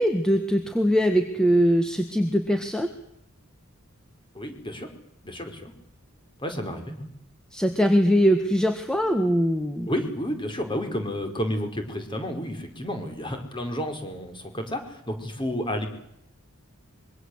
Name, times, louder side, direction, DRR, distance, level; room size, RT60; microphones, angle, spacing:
voice 1, 0.0-2.9 7.5-9.9, equal, 5° left, 6 dB, 1.7 m, -22 dB
voice 2, 4.3-4.9 5.2-5.7 6.4-7.1 9.9-15.9, equal, 20° left, 6 dB, 5.2 m, -31 dB
25.5 x 24.0 x 8.2 m, 0.74 s
head